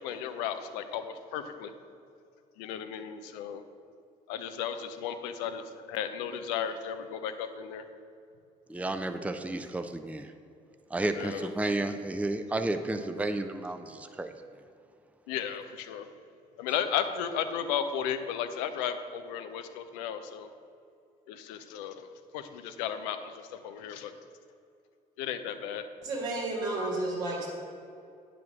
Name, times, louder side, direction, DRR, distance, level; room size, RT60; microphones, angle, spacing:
voice 1, 0.0-1.7 2.6-3.6 4.3-7.8 11.1-11.5 15.3-16.1 16.6-20.5 21.3-22.1 22.3-24.1 25.2-25.8, left 8 dB, 75° left, 9 dB, 0.6 m, -34 dB
voice 2, 8.7-10.3 10.9-14.3, right 2 dB, 5° right, 8 dB, 0.6 m, -32 dB
voice 3, 26.0-27.5, right 2 dB, 75° right, -3 dB, 2.4 m, -31 dB
9.3 x 5.1 x 5.9 m, 2.5 s
hypercardioid pair, 50°, 21 cm